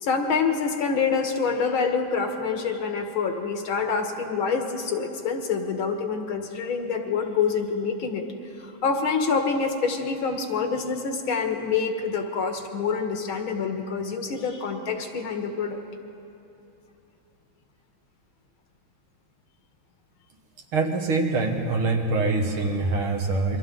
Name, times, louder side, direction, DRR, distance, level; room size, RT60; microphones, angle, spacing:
voice 1, 0.0-8.2 8.6-15.8, left 5 dB, 75° left, 4 dB, 2.2 m, -26 dB
voice 2, 20.7-23.6, right 3 dB, 75° right, 2 dB, 2.4 m, -24 dB
28.5 x 23.5 x 3.9 m, 2.9 s
omnidirectional pair, 2.3 m